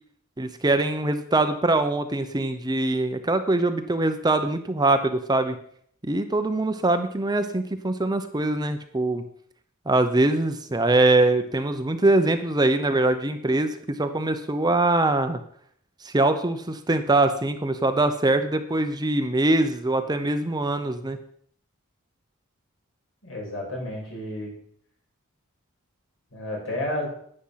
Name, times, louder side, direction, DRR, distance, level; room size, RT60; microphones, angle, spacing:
voice 1, 0.4-5.6 6.0-9.2 9.9-15.4 16.0-21.2, right 2 dB, 20° right, 8 dB, 0.8 m, -23 dB
voice 2, 23.2-24.5 26.3-27.1, left 1 dB, 70° left, -2 dB, 6.1 m, -31 dB
10.0 x 10.0 x 5.8 m, 0.64 s
head